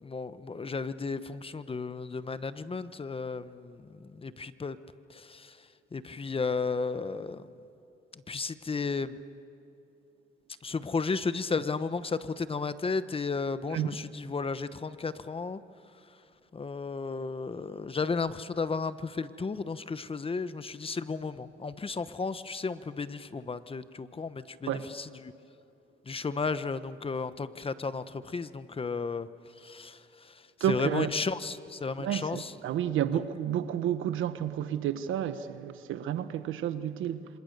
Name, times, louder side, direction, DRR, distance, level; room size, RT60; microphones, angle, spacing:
voice 1, 0.0-4.8 5.1-5.6 5.9-7.5 8.1-9.2 10.6-15.6 16.5-25.3 26.1-29.3 29.6-32.5 33.1-33.2, left 4 dB, 30° left, 1.0 m, -34 dB
voice 2, 30.6-31.1 32.0-37.3, right 10 dB, 85° right, 1.2 m, -31 dB
27.5 x 26.0 x 6.8 m
cardioid pair, 90°, 20 cm